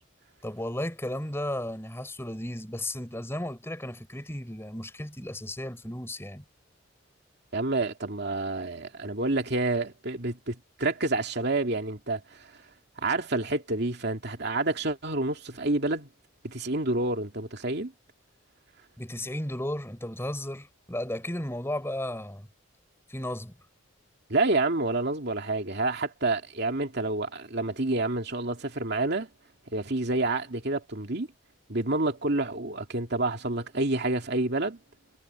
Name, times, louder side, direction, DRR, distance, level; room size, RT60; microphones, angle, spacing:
voice 1, 0.4-6.4 19.0-22.5 23.1-23.5, left 1 dB, 15° left, 4.8 m, -34 dB
voice 2, 7.5-12.5 13.0-16.1 16.4-17.9 24.3-29.3 29.7-31.3 31.7-34.8, right 2 dB, 55° right, 2.7 m, -28 dB
head